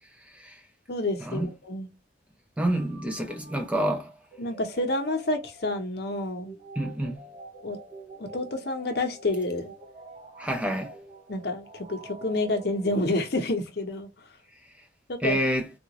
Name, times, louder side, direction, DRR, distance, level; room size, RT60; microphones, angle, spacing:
voice 1, 0.2-0.6 1.2-1.5 2.6-4.1 6.8-7.2 10.4-10.9 15.2-15.7, right 1 dB, 5° right, 0.4 m, -28 dB
voice 2, 0.9-1.9 4.4-6.5 7.6-7.8 8.2-9.7 11.3-14.1 15.1-15.4, left 2 dB, 55° left, 0.8 m, -29 dB
sound 1, 2.6-13.4, right 3 dB, 35° right, 0.9 m, -47 dB
3.7 x 2.4 x 2.9 m
head